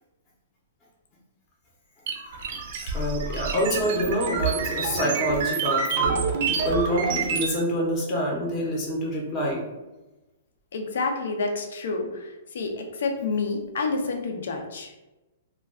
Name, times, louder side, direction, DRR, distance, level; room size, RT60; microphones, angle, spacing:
sound 1, 2.1-7.5, right 5 dB, 50° right, 0.5 m, -27 dB
voice 1, 2.9-9.6, equal, 20° left, -3 dB, 0.7 m, -27 dB
voice 2, 10.7-14.9, left 3 dB, 75° left, 3 dB, 0.5 m, -29 dB
2.3 x 2.2 x 3.5 m, 1.0 s
hypercardioid pair, 155°, 0 cm